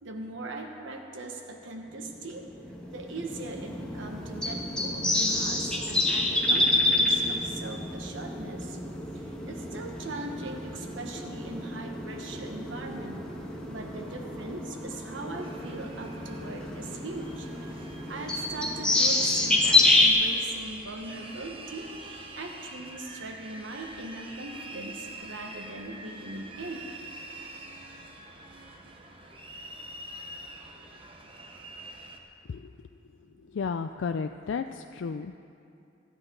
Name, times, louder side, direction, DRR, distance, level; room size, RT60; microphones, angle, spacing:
voice 1, 0.0-2.5 2.9-8.8 9.1-13.3 13.7-17.5 18.1-21.9 22.4-26.9, right 2 dB, 80° right, 3 dB, 1.2 m, -40 dB
sound 1, 2.3-20.1, left 2 dB, 5° left, 1.3 m, -28 dB
sound 2, 15.4-32.2, right 2 dB, 30° right, 1.0 m, -45 dB
voice 2, 33.5-35.4, left 5 dB, 75° left, 7 dB, 0.4 m, -32 dB
23.5 x 10.0 x 3.9 m, 2.6 s
head